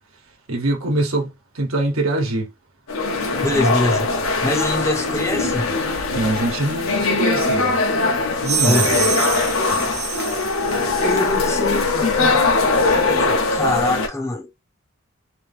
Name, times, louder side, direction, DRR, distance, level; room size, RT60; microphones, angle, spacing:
voice 1, 0.5-2.5 6.1-7.8 8.4-9.0, right 2 dB, 85° right, 1.1 m, -23 dB
sound 1, 2.9-14.1, left 3 dB, 90° left, 0.9 m, -21 dB
voice 2, 3.4-4.1 4.4-5.7 8.6-9.3 9.7-10.0 11.0-12.4 12.8-14.5, left 2 dB, 15° left, 0.5 m, -24 dB
sound 2, 8.4-11.4, right 7 dB, 35° right, 0.7 m, -26 dB
3.1 x 2.6 x 3.3 m
head